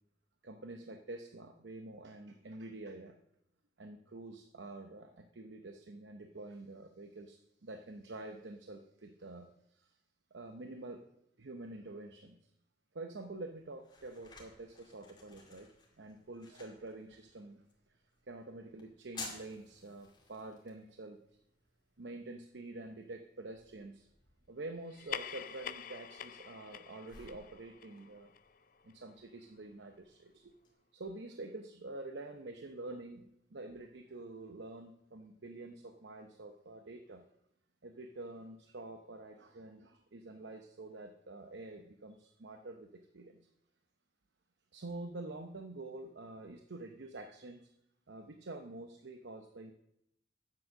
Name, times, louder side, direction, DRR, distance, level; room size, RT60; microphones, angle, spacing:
voice 1, 0.4-3.2 3.8-9.9 10.3-11.0 11.4-12.4 12.9-15.7 16.0-18.0 18.2-21.2 22.0-24.1 24.5-28.3 28.8-30.5 30.9-37.2 37.8-43.4 44.7-47.7 48.1-49.7, right 2 dB, 80° right, 6 dB, 0.8 m, -47 dB
sound 1, 13.2-30.7, left 3 dB, 25° left, 2.3 m, -56 dB
sound 2, 24.8-29.7, left 8 dB, 50° left, 0.4 m, -47 dB
9.6 x 7.7 x 6.4 m, 0.79 s
head